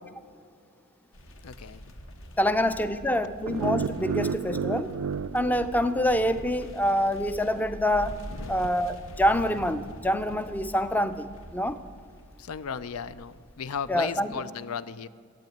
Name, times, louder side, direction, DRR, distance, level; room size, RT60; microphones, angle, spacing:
sound 1, 1.1-13.9, equal, 60° left, 1.3 m, -44 dB
voice 1, 1.4-1.8 8.3-8.7 12.4-15.1, left 6 dB, 85° left, 15 dB, 0.5 m, -36 dB
voice 2, 2.4-4.9 5.3-8.2 8.5-11.8 13.9-14.4, equal, 10° left, 11 dB, 0.4 m, -26 dB
sound 2, 3.5-6.5, right 6 dB, 75° right, 0.4 m, -32 dB
12.0 x 8.4 x 9.2 m, 2.3 s
head